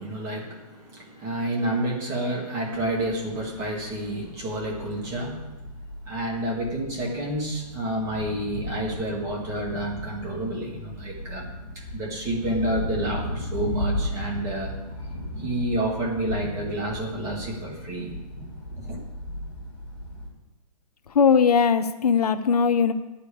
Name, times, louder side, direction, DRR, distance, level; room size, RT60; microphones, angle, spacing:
voice 1, 0.0-5.6 6.0-11.5 11.7-14.8 15.4-18.2 18.8-19.0, right 1 dB, 15° right, -1 dB, 1.6 m, -29 dB
sound 1, 2.7-20.3, left 1 dB, 10° left, 2.4 m, -36 dB
voice 2, 21.1-22.9, left 6 dB, 65° left, 10 dB, 0.7 m, -19 dB
10.5 x 5.1 x 8.4 m, 1.1 s
hypercardioid pair, 165°, 21 cm